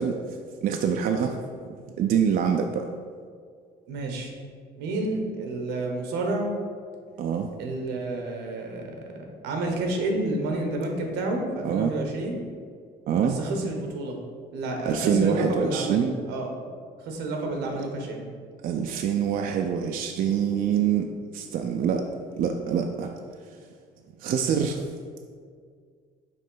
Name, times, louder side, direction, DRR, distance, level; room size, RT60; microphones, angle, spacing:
voice 1, 0.0-1.4 2.0-2.9 7.2-7.5 11.6-11.9 13.1-13.4 14.9-16.1 18.6-22.1 22.4-23.1 24.2-24.9, right 8 dB, 55° right, 4 dB, 0.4 m, -25 dB
voice 2, 3.9-4.3 4.8-6.5 7.6-9.0 9.4-12.4 13.2-14.2 14.5-16.5 17.0-18.3, right 2 dB, 85° right, 2 dB, 1.0 m, -29 dB
5.3 x 3.2 x 5.5 m, 2.1 s
cardioid pair, 110°, 17 cm